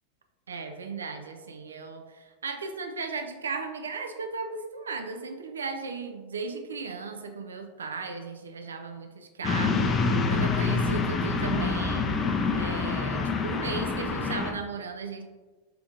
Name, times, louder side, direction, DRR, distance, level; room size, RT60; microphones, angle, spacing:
voice 1, 0.5-12.1 12.5-15.2, right 4 dB, 80° right, 5 dB, 0.5 m, -36 dB
sound 1, 9.4-14.5, left 4 dB, 30° left, 0.5 m, -26 dB
5.7 x 3.6 x 2.5 m, 1.3 s
hypercardioid pair, 95°, 0 cm